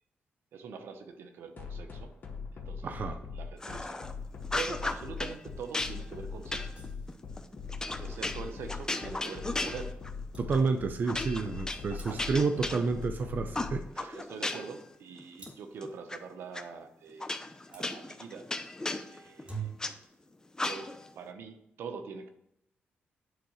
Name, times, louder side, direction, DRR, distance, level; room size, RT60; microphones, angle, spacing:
voice 1, 0.5-2.2 2.5-2.9 3.3-4.0 4.5-6.7 8.0-10.0 11.9-12.5 14.0-17.3 17.7-18.5 19.1-19.7 20.6-22.3, right 5 dB, 80° right, 7 dB, 1.0 m, -44 dB
sound 1, 1.6-13.8, left 5 dB, 55° left, 1.7 m, -40 dB
voice 2, 2.8-3.2 10.4-14.2, right 4 dB, 50° right, 7 dB, 0.7 m, -30 dB
sound 2, 3.6-4.1 4.4-5.4 5.7-10.2 10.5-10.7 11.1-13.2 13.5-14.8 15.2-16.2 16.5-16.6 17.2-19.9 20.6-21.1, left 2 dB, 15° left, 0.8 m, -36 dB
sound 3, 6.7-7.2 9.9-10.0 10.3-10.5 12.0-12.5 15.4-15.8 17.7-17.9 19.2-20.0, right 6 dB, 30° right, 2.9 m, -44 dB
9.3 x 3.8 x 6.3 m, 0.81 s
cardioid pair, 85°, 4 cm